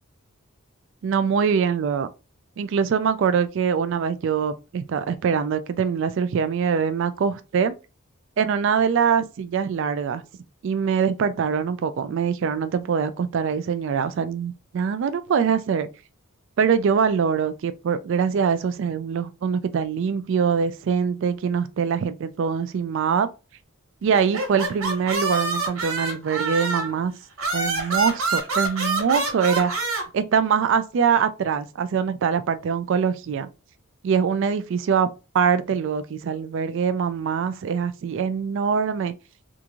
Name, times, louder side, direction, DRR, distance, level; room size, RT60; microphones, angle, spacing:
voice 1, 1.0-2.1 2.6-7.7 8.4-10.2 10.6-15.9 16.6-23.3 24.0-27.1 27.5-29.7 30.1-33.5 34.0-35.1 35.3-39.1, right 6 dB, 60° right, 0.3 m, -23 dB
sound 1, 24.1-27.0 27.4-30.0, right 3 dB, 80° right, 1.4 m, -26 dB
3.5 x 2.5 x 2.9 m
head